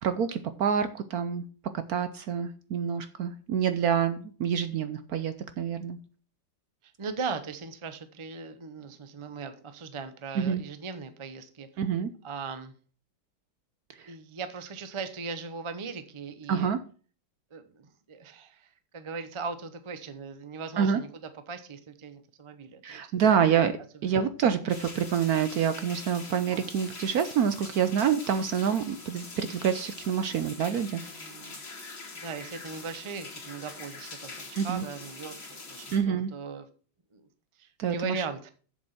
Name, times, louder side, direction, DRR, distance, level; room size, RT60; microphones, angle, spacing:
voice 1, 0.0-1.4 1.9-6.0 10.3-10.6 11.8-12.1 14.0-14.1 16.5-16.8 20.8-21.0 22.8-23.8 24.0-31.0 34.6-34.8 35.9-36.3 37.8-38.2, right 7 dB, 65° right, 11 dB, 0.9 m, -27 dB
voice 2, 7.0-11.7 12.2-12.7 14.1-16.7 17.5-21.1 21.5-23.1 24.1-24.2 30.9-31.9 32.1-36.7 37.1-37.3 37.6-38.5, right 5 dB, 45° right, 10 dB, 0.3 m, -39 dB
sound 1, 24.7-36.0, left 3 dB, 75° left, 3.5 m, -44 dB
7.6 x 7.1 x 5.8 m, 0.40 s
omnidirectional pair, 2.2 m